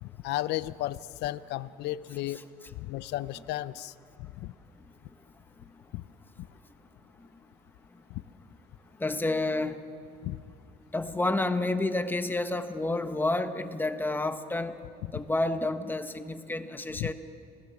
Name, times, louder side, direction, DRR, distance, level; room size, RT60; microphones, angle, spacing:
voice 1, 0.0-2.4 2.8-3.9 4.2-4.5 5.9-6.0 8.1-8.2 10.2-10.4 17.0-17.1, left 15 dB, 85° left, 16 dB, 0.6 m, -34 dB
voice 2, 9.0-9.8 10.9-14.8 15.1-17.1, left 2 dB, 10° left, 8 dB, 1.3 m, -29 dB
30.0 x 19.0 x 7.2 m, 2.3 s
cardioid pair, 110°, 17 cm